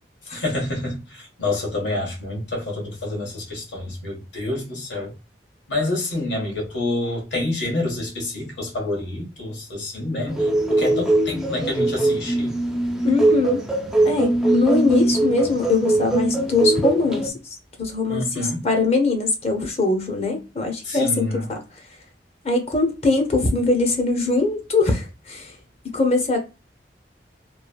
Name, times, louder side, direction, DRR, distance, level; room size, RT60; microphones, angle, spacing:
voice 1, 0.3-5.1 5.7-12.5 18.1-18.6 20.8-21.5, left 2 dB, 90° left, 1.3 m, -28 dB
sound 1, 10.3-17.3, right 2 dB, 5° right, 0.4 m, -21 dB
voice 2, 13.0-13.6 14.0-21.6 22.4-25.5 25.8-26.4, left 3 dB, 35° left, 0.7 m, -22 dB
3.1 x 2.3 x 2.2 m
head